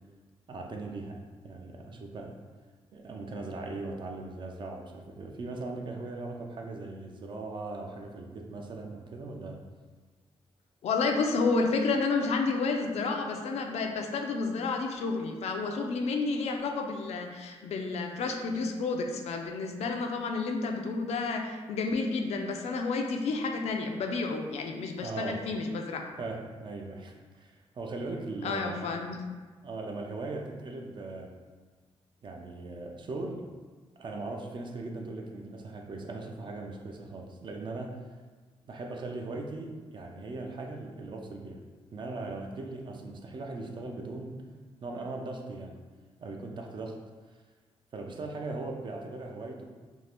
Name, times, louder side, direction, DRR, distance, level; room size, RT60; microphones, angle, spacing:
voice 1, 0.5-2.4 2.9-9.6 25.0-25.4 26.2-28.9 29.6-31.3 32.2-33.5 34.0-38.0 38.7-41.6 41.9-44.4 44.8-45.7 46.2-47.0 47.3-47.4 47.9-49.6, right 2 dB, 45° right, 1 dB, 0.4 m, -39 dB
voice 2, 10.8-26.1 28.4-29.2, left 4 dB, 75° left, 3 dB, 0.4 m, -30 dB
2.6 x 2.4 x 3.4 m, 1.4 s
cardioid pair, 110°, 11 cm